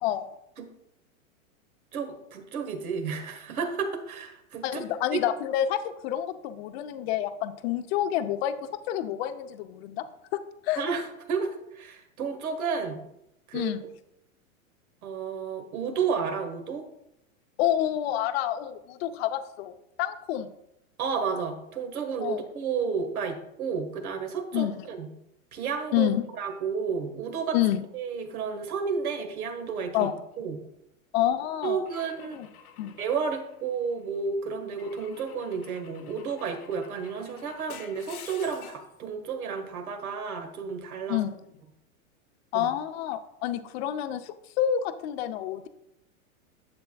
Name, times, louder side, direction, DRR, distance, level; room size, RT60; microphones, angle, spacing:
voice 1, 1.9-4.8 5.1-5.2 10.7-13.0 13.5-13.7 15.0-16.9 21.0-25.1 25.5-27.6 27.9-30.1 30.4-30.6 31.6-32.4 33.0-41.2 42.5-42.7, right 5 dB, 85° right, 6 dB, 1.6 m, -32 dB
voice 2, 4.6-10.0 10.3-10.8 13.5-13.8 17.6-19.7 20.0-20.5 22.2-22.5 24.5-24.8 25.9-26.2 27.5-27.9 29.9-30.1 31.1-31.8 32.3-32.5 32.8-32.9 41.1-41.4 42.5-45.7, left 11 dB, 45° left, 10 dB, 0.7 m, -28 dB
Car / Engine / Glass, 31.9-34.1 34.8-39.0, left 8 dB, 85° left, 1.0 m, -50 dB
10.5 x 7.7 x 2.3 m, 0.82 s
hypercardioid pair, 135°, 42 cm